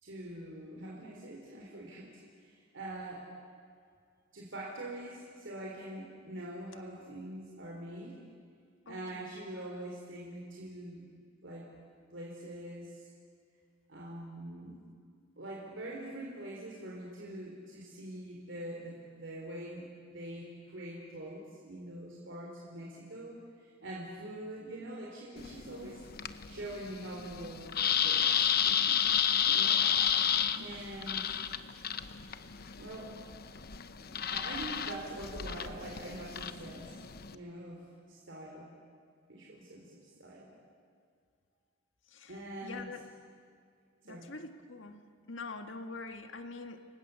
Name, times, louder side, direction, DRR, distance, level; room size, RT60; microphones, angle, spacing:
voice 1, 0.0-2.1 2.4-3.3 4.3-8.2 8.9-11.1 11.4-11.7 12.1-13.1 13.9-14.8 15.4-26.0 26.5-29.0 29.5-29.8 30.6-31.3 32.8-33.2 34.1-37.0 37.3-38.7 39.3-40.5 42.3-43.0 44.0-44.3, right 1 dB, 65° right, -3 dB, 3.9 m, -44 dB
voice 2, 8.9-9.3 30.6-30.9 42.1-43.0 44.1-46.9, left 3 dB, 70° left, 7 dB, 1.7 m, -45 dB
sound 1, 25.4-37.3, left 8 dB, 50° left, 0.9 m, -32 dB
29.5 x 24.0 x 7.0 m, 2.1 s
head